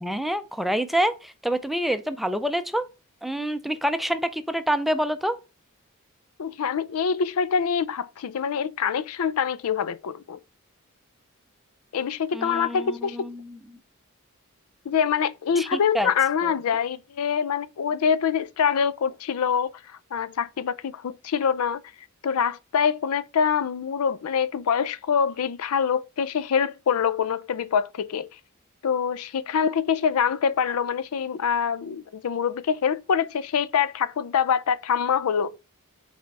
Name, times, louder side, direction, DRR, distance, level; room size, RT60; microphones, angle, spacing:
voice 1, 0.0-2.9 3.2-5.4 12.3-13.6 15.6-16.1 16.4-16.5, equal, ahead, 0.4 m, -27 dB
voice 2, 6.4-10.4 11.9-13.3 14.9-21.8 22.2-28.3 28.8-35.6, left 7 dB, 85° left, 0.4 m, -25 dB
5.9 x 4.2 x 4.6 m
head